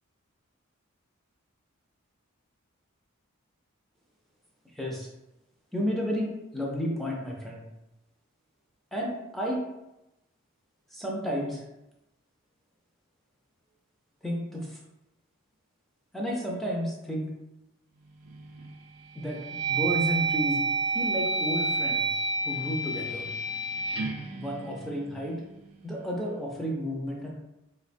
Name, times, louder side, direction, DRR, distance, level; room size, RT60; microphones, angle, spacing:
voice 1, 4.8-5.1 5.7-7.6 8.9-9.6 10.9-11.6 14.2-14.8 16.1-17.3 19.1-19.4 19.7-20.6 20.9-22.1 22.4-23.3 24.4-25.4 25.8-27.3, equal, ahead, -2 dB, 0.5 m, -31 dB
sound 1, 18.2-18.7 19.2-25.4, right 3 dB, 85° right, 0.5 m, -30 dB
4.3 x 2.1 x 2.5 m, 0.92 s
head